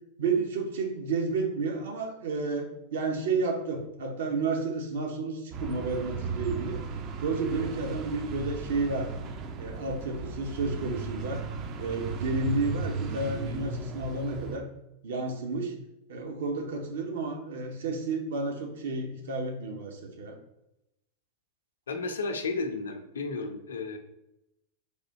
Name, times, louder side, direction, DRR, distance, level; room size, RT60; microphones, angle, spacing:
voice 1, 0.2-6.8 7.2-9.1 9.6-11.4 11.8-14.7 15.0-15.7 16.1-20.4, right 3 dB, 60° right, 3 dB, 0.7 m, -31 dB
sound 1, 5.5-14.6, right 4 dB, 35° right, 0.4 m, -36 dB
voice 2, 21.9-24.0, left 3 dB, 65° left, 6 dB, 0.5 m, -33 dB
3.4 x 2.7 x 4.0 m, 0.87 s
figure-of-eight pair, 90°, 0 cm